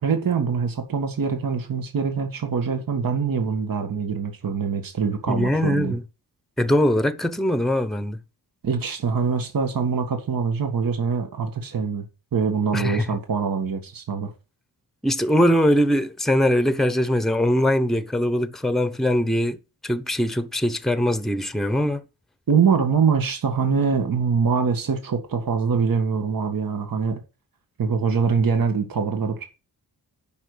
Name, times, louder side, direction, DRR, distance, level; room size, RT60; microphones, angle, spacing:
voice 1, 0.0-6.0 8.6-12.1 12.3-14.3 22.5-27.2 27.8-29.5, right 5 dB, 65° right, 1.9 m, -24 dB
voice 2, 5.3-6.0 6.6-8.2 12.7-13.1 15.0-19.6 19.8-22.0, equal, ahead, 0.9 m, -21 dB
10.5 x 5.4 x 6.3 m
wide cardioid pair, 115°, 37 cm